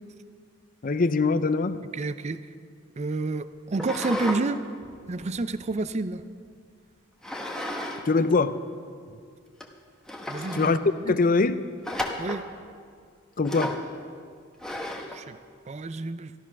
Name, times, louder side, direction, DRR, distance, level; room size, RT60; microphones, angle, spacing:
voice 1, 0.8-1.8 8.1-8.6 10.5-10.8 11.1-11.6 13.4-13.7, left 3 dB, 45° left, 13 dB, 0.6 m, -22 dB
voice 2, 1.9-2.4 3.0-4.7 5.1-6.2 10.3-10.7 11.0-11.1 12.2-12.5 15.1-15.4 15.7-16.3, right 3 dB, 35° right, 13 dB, 0.5 m, -29 dB
sound 1, 3.7-4.4 4.8-6.2 7.2-8.0 8.3-8.4 9.1-9.2 9.6-9.7 10.1-10.8 11.8-12.5 13.4-13.9 14.6-15.2, left 1 dB, 5° left, 1.1 m, -33 dB
13.5 x 12.5 x 6.0 m, 2.1 s
head